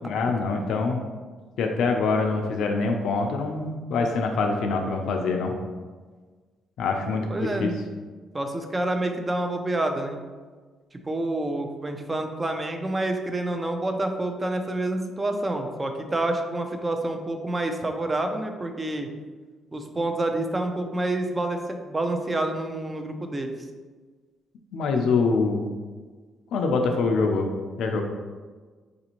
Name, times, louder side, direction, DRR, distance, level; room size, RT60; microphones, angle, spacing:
voice 1, 0.0-1.0 1.6-5.5 6.8-7.7 24.7-25.7 26.5-27.5 27.8-28.0, left 4 dB, 75° left, 2 dB, 0.4 m, -24 dB
voice 2, 7.3-7.8 8.3-10.2 11.1-19.1 19.7-21.6 21.8-23.5, right 2 dB, 25° right, 5 dB, 0.5 m, -28 dB
4.8 x 2.5 x 2.9 m, 1.4 s
cardioid pair, 90°, 0 cm